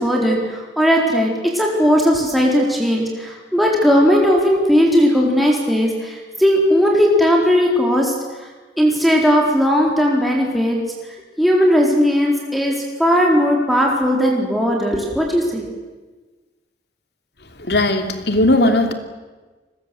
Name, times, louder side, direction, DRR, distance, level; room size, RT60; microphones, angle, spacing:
voice 1, 0.0-8.1 8.8-10.8 11.4-12.7 13.0-15.7, equal, ahead, -2 dB, 4.1 m, -17 dB
voice 2, 17.7-18.9, left 1 dB, 60° left, 6 dB, 2.9 m, -17 dB
29.0 x 22.0 x 7.9 m, 1.3 s
head